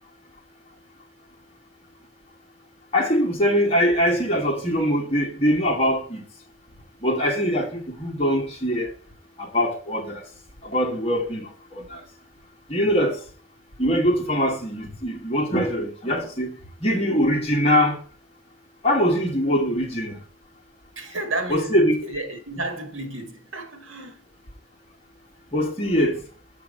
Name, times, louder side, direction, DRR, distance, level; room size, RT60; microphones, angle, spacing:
voice 1, 2.9-6.2 7.0-8.9 9.4-10.2 10.6-12.0 12.7-13.2 13.8-18.0 18.8-20.1 21.5-21.9 25.5-26.2, equal, 30° left, 1.6 m, -22 dB
voice 2, 20.9-24.2, right 2 dB, 75° right, 1.6 m, -32 dB
7.5 x 4.5 x 5.4 m
head